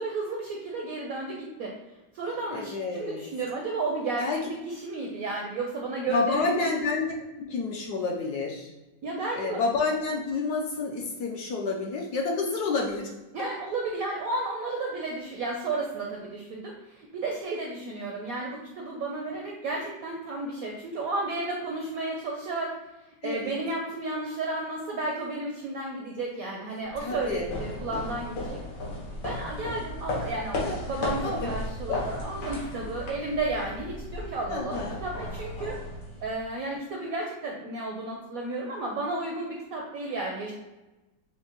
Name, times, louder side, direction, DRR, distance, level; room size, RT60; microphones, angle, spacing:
voice 1, 0.0-1.7 2.1-6.7 9.0-9.6 13.3-22.7 23.2-28.6 29.2-35.7 36.2-40.5, right 2 dB, 75° right, -1 dB, 0.8 m, -33 dB
voice 2, 2.5-3.2 4.2-4.4 6.1-7.1 7.4-8.7 9.3-13.1 23.2-23.5 27.0-27.5 30.6-30.7 31.0-31.5 31.9-32.1 34.5-35.0, left 3 dB, 70° left, 0 dB, 1.0 m, -29 dB
sound 1, 26.9-36.5, left 1 dB, 85° left, 1.7 m, -35 dB
5.7 x 2.2 x 2.9 m, 1.1 s
omnidirectional pair, 2.0 m